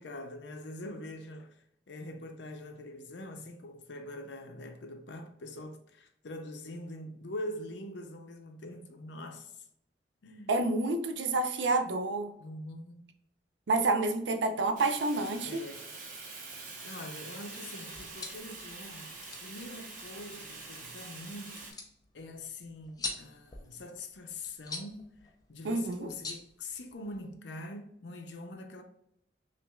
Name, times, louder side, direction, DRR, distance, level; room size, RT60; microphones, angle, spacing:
voice 1, 0.0-9.7 10.2-10.5 12.4-13.1 15.4-15.9 16.8-19.1 19.4-21.7 22.1-28.8, left 1 dB, 75° left, 0.6 m, -44 dB
voice 2, 10.5-12.3 13.7-15.6 25.6-26.1, right 3 dB, 80° right, 0.5 m, -29 dB
Fire, 14.7-21.7, right 3 dB, 50° right, 1.0 m, -45 dB
sound 1, 17.9-27.3, left 3 dB, 20° left, 0.5 m, -46 dB
5.8 x 2.5 x 2.3 m
head